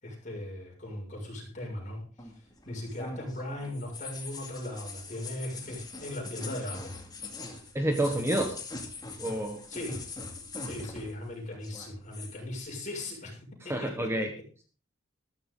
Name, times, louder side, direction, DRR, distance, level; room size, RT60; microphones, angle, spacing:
voice 1, 0.0-2.3 2.6-7.0 9.7-10.0 10.6-13.4 13.6-14.2, left 1 dB, 40° left, -1 dB, 6.6 m, -38 dB
sound 1, 2.2-11.3 11.5-12.4, left 3 dB, 20° left, 2.4 m, -42 dB
voice 2, 7.7-8.6 9.2-9.6 13.7-14.3, right 1 dB, 15° right, 4 dB, 1.4 m, -28 dB
14.0 x 13.5 x 3.9 m, 0.39 s
head